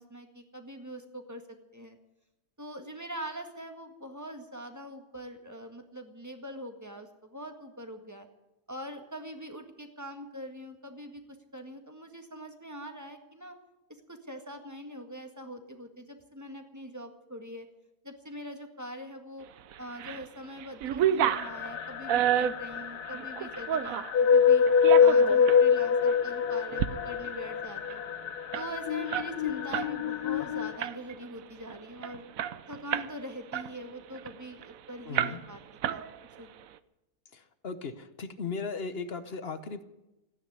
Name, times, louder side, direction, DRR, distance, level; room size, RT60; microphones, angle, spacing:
voice 1, 0.0-2.0 2.6-8.3 8.7-13.6 13.9-17.7 18.0-19.5 19.8-24.6 25.0-28.0 28.5-32.3 32.7-35.6 35.9-36.0 36.4-36.5, equal, 10° right, 5 dB, 1.7 m, -43 dB
sound 1, 19.7-20.3 20.6-24.2 24.7-25.6 26.1-26.2 26.6-26.9 27.2-27.3 27.6-29.9 30.2-30.4 30.8-31.3 31.7-31.8 32.0-33.2 33.5-34.7 35.2-35.6 35.8-36.5, right 10 dB, 65° right, 1.1 m, -30 dB
sound 2, 21.3-30.8, left 7 dB, 75° left, 1.3 m, -25 dB
voice 2, 35.1-35.4 37.3-39.8, left 4 dB, 45° left, 11 dB, 1.1 m, -37 dB
15.0 x 9.7 x 9.6 m, 0.96 s
omnidirectional pair, 1.7 m